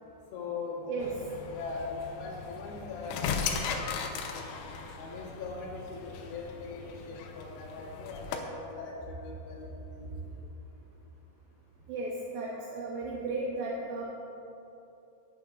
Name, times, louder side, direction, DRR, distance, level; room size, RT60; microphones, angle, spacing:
voice 1, 0.3-1.1 1.4-4.5 5.0-10.4, left 3 dB, 70° left, -3 dB, 3.0 m, -41 dB
sound 1, 1.0-8.4, left 6 dB, 90° left, 2.3 m, -38 dB
voice 2, 11.9-14.0, right 3 dB, 75° right, -4 dB, 2.7 m, -35 dB
16.5 x 8.0 x 2.4 m, 3.0 s
omnidirectional pair, 5.3 m